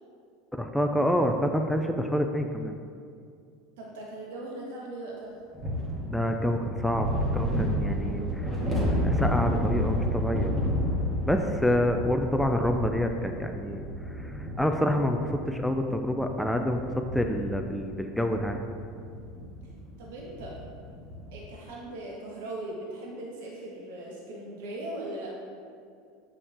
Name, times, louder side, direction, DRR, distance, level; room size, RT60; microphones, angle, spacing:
voice 1, 0.6-2.7 6.1-7.1 7.3-8.5 9.0-10.5 11.2-18.6, equal, ahead, 4 dB, 0.6 m, -27 dB
voice 2, 3.8-5.4 19.6-19.7 20.0-20.5 21.3-25.3, right 1 dB, 75° right, -4 dB, 1.7 m, -39 dB
sound 1, 5.5-21.4, equal, 20° right, 2.2 m, -31 dB
8.3 x 7.2 x 3.7 m, 2.3 s
hypercardioid pair, 95°, 0 cm